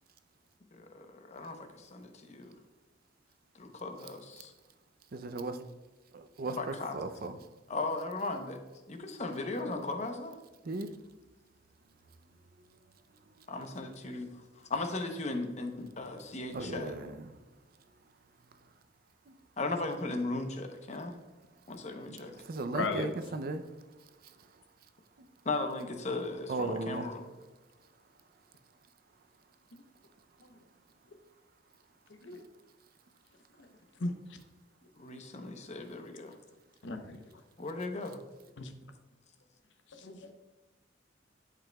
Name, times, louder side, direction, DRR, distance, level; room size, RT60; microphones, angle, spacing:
voice 1, 0.7-2.5 3.6-4.5 6.6-6.9 7.7-8.6 8.9-10.4 13.5-14.3 14.7-16.9 19.6-21.2 21.7-22.4 25.4-27.2 35.0-36.4 37.6-38.2, left 2 dB, 40° left, 5 dB, 0.8 m, -37 dB
voice 2, 5.1-5.6 6.1-7.4 10.6-10.9 15.8-15.9 16.5-17.3 19.3-19.4 22.1-23.7 24.2-24.5 26.5-27.1, right 2 dB, 50° right, 9 dB, 0.5 m, -37 dB
voice 3, 22.7-23.1 30.4-30.5 32.2-32.4 33.6-33.7 34.0-34.4 36.8-37.4 38.6-38.7 39.9-40.3, left 3 dB, 70° left, 7 dB, 0.7 m, -37 dB
11.0 x 5.0 x 2.3 m, 1.2 s
head